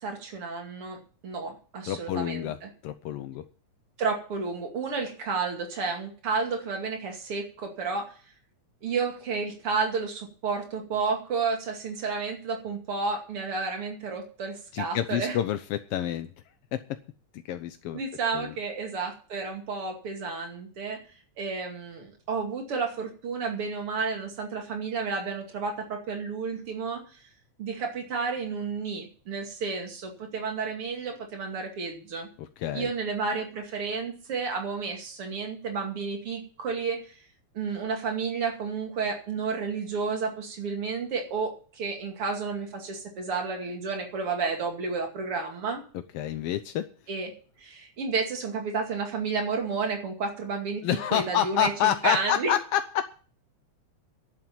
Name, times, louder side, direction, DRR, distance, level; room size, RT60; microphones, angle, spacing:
voice 1, 0.0-2.7 4.0-8.1 8.8-15.4 17.9-21.0 21.4-27.0 27.6-32.3 32.7-37.1 37.5-45.8 47.1-47.3 47.6-52.5, right 4 dB, 50° right, 2 dB, 3.2 m, -31 dB
voice 2, 1.8-2.6 2.8-3.4 14.7-16.3 16.7-16.8 17.5-18.0 18.3-18.5 32.4-32.9 46.1-46.9 50.8-53.1, left 11 dB, 80° left, 10 dB, 1.3 m, -28 dB
11.0 x 7.8 x 8.8 m, 0.40 s
omnidirectional pair, 3.4 m